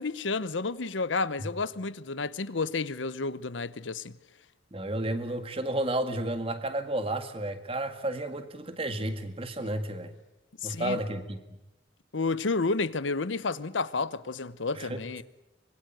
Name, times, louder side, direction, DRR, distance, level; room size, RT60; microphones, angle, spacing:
voice 1, 0.0-4.1 10.6-11.0 12.1-15.2, left 3 dB, 85° left, 0.9 m, -31 dB
voice 2, 4.7-10.1 10.6-11.4 14.8-15.0, right 1 dB, 30° right, 2.0 m, -32 dB
25.0 x 21.5 x 9.2 m
head